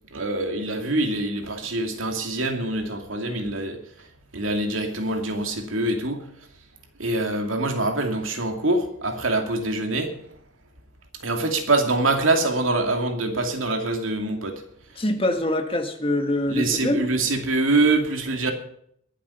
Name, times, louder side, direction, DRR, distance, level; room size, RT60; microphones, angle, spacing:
voice 1, 0.1-3.8 4.3-6.3 7.0-10.1 11.2-14.6 16.5-18.5, right 2 dB, 85° right, 2.6 m, -24 dB
voice 2, 15.0-17.0, left 1 dB, 30° left, 1.7 m, -24 dB
22.5 x 7.8 x 5.7 m
head